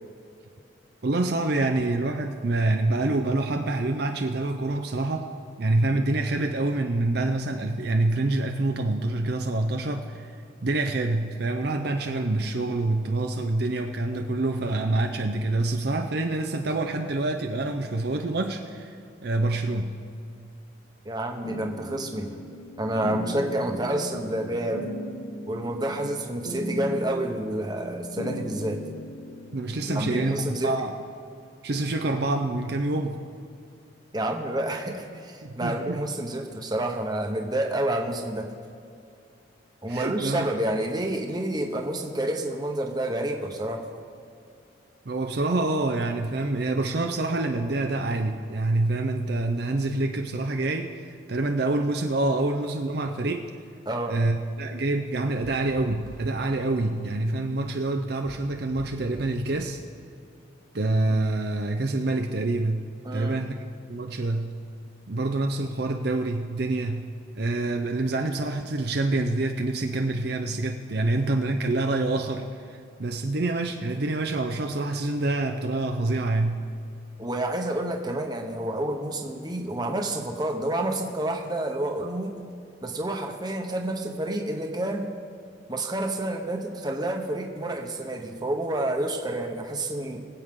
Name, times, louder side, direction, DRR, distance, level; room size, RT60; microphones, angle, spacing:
voice 1, 1.0-5.3 5.6-10.3 10.6-19.0 19.2-20.0 26.0-26.1 29.5-30.9 31.6-33.2 35.4-36.0 39.9-40.5 45.1-53.5 54.1-59.8 60.7-63.6 63.9-64.6 65.1-67.1 67.3-76.6, right 2 dB, 55° right, 4 dB, 0.6 m, -26 dB
voice 2, 21.0-22.3 22.8-24.9 25.5-28.8 29.9-30.7 34.1-38.5 39.8-43.9 53.9-54.2 63.0-63.4 77.2-82.3 82.8-85.1 85.7-90.2, right 1 dB, 20° right, 3 dB, 1.0 m, -29 dB
sound 1, 21.4-30.4, left 1 dB, 90° left, 1.9 m, -37 dB
sound 2, 55.4-56.4 58.2-59.5, right 1 dB, 85° right, 1.4 m, -44 dB
23.5 x 8.0 x 3.7 m, 2.5 s
head